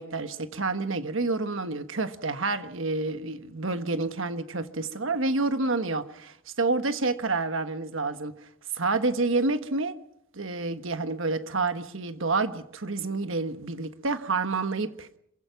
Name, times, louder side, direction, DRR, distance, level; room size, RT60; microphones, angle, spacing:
voice 1, 0.0-8.3 8.7-10.0 10.3-15.2, right 3 dB, 65° right, 1.3 m, -28 dB
27.0 x 16.0 x 5.9 m
head